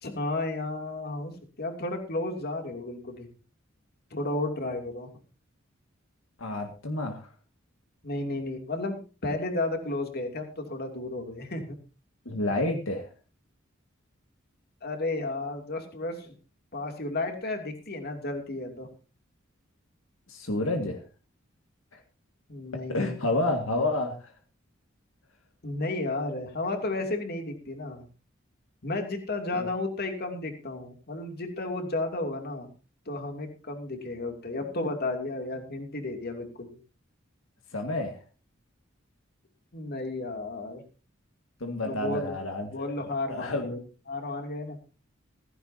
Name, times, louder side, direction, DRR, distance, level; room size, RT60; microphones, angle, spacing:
voice 1, 0.0-1.3 1.6-3.3 4.1-5.1 8.0-11.7 14.8-16.3 16.7-18.9 22.5-23.1 25.6-28.0 28.8-32.7 33.1-36.8 39.7-40.8 41.8-42.4 42.7-43.5 44.1-44.8, left 2 dB, 50° left, 4 dB, 2.8 m, -33 dB
voice 2, 6.4-7.3 12.3-13.1 20.3-21.0 21.9-22.0 22.9-24.3 29.5-29.7 37.7-38.2 41.6-43.8, left 2 dB, 80° left, 4 dB, 2.1 m, -30 dB
16.0 x 15.5 x 2.8 m, 0.33 s
head